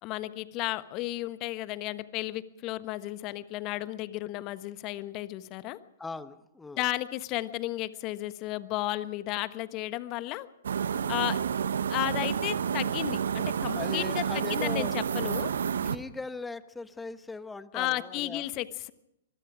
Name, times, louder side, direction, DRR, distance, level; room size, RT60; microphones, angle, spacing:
voice 1, 0.0-5.8 6.8-10.5 11.1-11.4 11.9-15.5 17.7-18.9, left 16 dB, 35° left, 14 dB, 1.3 m, -33 dB
voice 2, 6.0-6.9 10.9-11.2 13.7-15.0 15.8-18.5, left 3 dB, 10° left, 13 dB, 1.2 m, -39 dB
sound 1, 10.6-16.0, right 7 dB, 65° right, 1.1 m, -30 dB
24.0 x 22.0 x 4.9 m, 0.79 s
figure-of-eight pair, 115°, 0 cm